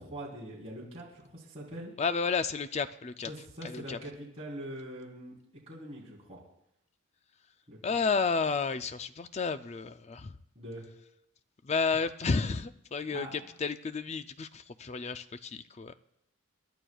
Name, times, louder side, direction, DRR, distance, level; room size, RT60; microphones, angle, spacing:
voice 1, 0.0-1.9 3.3-6.4 7.7-7.8 10.5-10.8 13.1-13.3, right 1 dB, 30° right, -5 dB, 3.5 m, -43 dB
voice 2, 2.0-3.3 3.6-4.0 7.8-10.4 11.6-15.9, left 4 dB, 30° left, 11 dB, 0.4 m, -31 dB
28.0 x 11.5 x 2.3 m, 0.76 s
head